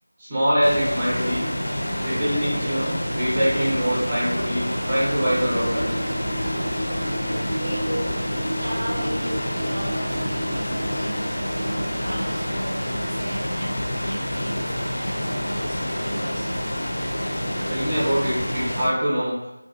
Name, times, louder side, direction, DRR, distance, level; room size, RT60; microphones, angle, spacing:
voice 1, 0.2-1.5 2.0-5.9 17.6-19.4, equal, 15° right, -9 dB, 0.7 m, -24 dB
sound 1, 0.6-18.9, equal, 55° left, 0.6 m, -28 dB
sound 2, 2.0-8.4, equal, 85° right, 1.1 m, -37 dB
sound 3, 5.1-12.9, equal, 40° right, 0.3 m, -34 dB
voice 2, 7.6-8.2 8.6-16.6, equal, 55° right, -7 dB, 0.7 m, -34 dB
2.7 x 2.5 x 2.4 m, 0.93 s
figure-of-eight pair, 170°, 0 cm